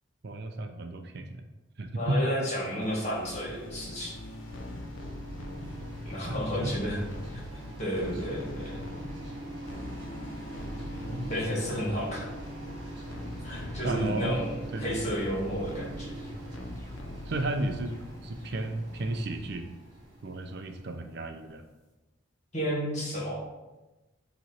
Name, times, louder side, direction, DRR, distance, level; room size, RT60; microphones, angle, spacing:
voice 1, 0.2-1.4 1.8-2.2 6.3-6.7 11.1-11.3 13.8-14.4 14.7-14.9 17.3-17.9 18.2-19.7 20.2-21.6, right 2 dB, 55° right, 6 dB, 0.5 m, -33 dB
voice 2, 1.9-4.2 6.0-7.0 7.8-8.8 11.3-12.3 13.4-16.3 22.5-23.4, equal, 35° left, -5 dB, 1.8 m, -32 dB
sound 1, 2.5-21.5, right 1 dB, 25° right, 1.9 m, -44 dB
sound 2, 2.8-18.2, left 1 dB, 80° left, 0.7 m, -42 dB
sound 3, 15.1-19.5, left 1 dB, 15° left, 0.7 m, -49 dB
7.4 x 3.1 x 4.2 m, 1.1 s
head